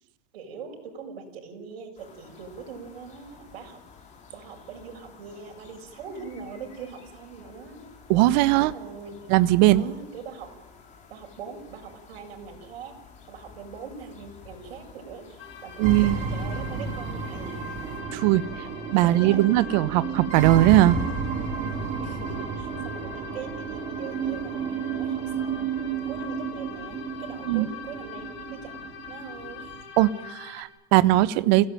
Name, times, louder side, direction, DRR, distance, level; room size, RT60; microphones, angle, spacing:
voice 1, 0.3-3.8 4.3-7.9 8.5-9.3 9.7-10.5 11.1-13.0 13.3-17.6 19.0-19.5 22.0-25.7 26.1-29.8, right 6 dB, 70° right, 2 dB, 7.2 m, -42 dB
sound 1, 2.0-18.0, left 5 dB, 25° left, 5.2 m, -51 dB
voice 2, 8.1-8.7 9.3-9.9 15.8-16.2 18.1-18.4 18.9-21.0 27.5-27.7 30.0-31.7, right 16 dB, 45° right, 14 dB, 1.0 m, -19 dB
sound 2, 15.4-30.6, left 7 dB, 70° left, 7.2 m, -43 dB
sound 3, 15.8-29.8, right 6 dB, 25° right, 2.6 m, -32 dB
30.0 x 16.5 x 9.2 m, 1.0 s
supercardioid pair, 150°, 31 cm